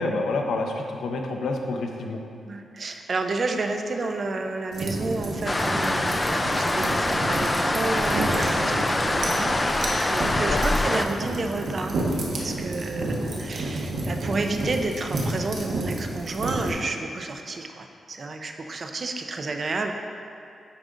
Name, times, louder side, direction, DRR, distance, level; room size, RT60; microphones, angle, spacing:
voice 1, 0.0-2.2 10.3-10.6, left 2 dB, 80° left, 2 dB, 0.7 m, -28 dB
voice 2, 2.5-12.0 12.4-19.9, right 3 dB, 40° right, 5 dB, 0.5 m, -31 dB
sound 1, 4.7-16.7, right 2 dB, 70° right, 1.1 m, -30 dB
sound 2, 5.5-11.1, left 2 dB, 15° left, 0.3 m, -24 dB
10.0 x 3.8 x 3.7 m, 2.5 s
wide cardioid pair, 140°, 0 cm